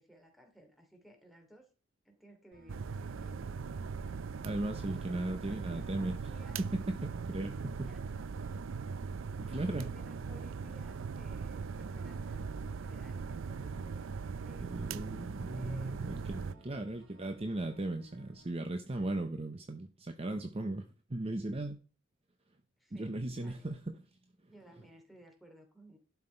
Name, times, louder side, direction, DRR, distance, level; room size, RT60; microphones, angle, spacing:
voice 1, 0.0-1.7 2.0-3.5 4.8-6.6 7.5-8.0 9.3-14.1 14.4-14.7 15.5-16.9 22.8-23.7 24.5-26.0, equal, ahead, 3 dB, 2.7 m, -59 dB
sound 1, 2.5-18.5, right 1 dB, 90° right, 2.1 m, -61 dB
sound 2, 2.7-16.5, right 5 dB, 70° right, 0.5 m, -40 dB
voice 2, 4.4-6.1 6.6-7.9 9.4-9.9 14.6-21.8 22.9-24.0, right 2 dB, 30° right, 7 dB, 0.7 m, -37 dB
11.5 x 5.8 x 4.4 m, 0.35 s
head